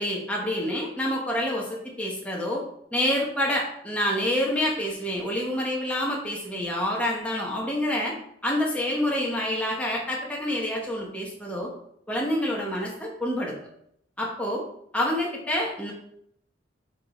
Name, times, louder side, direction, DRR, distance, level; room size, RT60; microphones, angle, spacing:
voice 1, 0.0-1.7 2.0-2.6 2.9-8.1 8.4-11.7 12.1-13.5 14.2-14.6 14.9-15.9, left 1 dB, 5° left, -3 dB, 1.3 m, -27 dB
5.6 x 4.9 x 4.4 m, 0.71 s
head